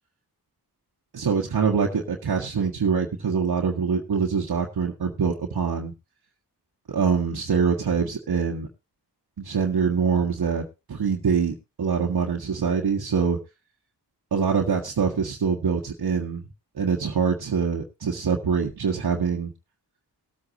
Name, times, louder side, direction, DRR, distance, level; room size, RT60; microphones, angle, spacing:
voice 1, 1.1-5.9 6.9-8.7 9.4-13.4 14.3-16.4 16.8-19.5, right 6 dB, 65° right, -1 dB, 1.6 m, -24 dB
19.5 x 8.3 x 2.9 m, 0.27 s
cardioid pair, 70°, 40 cm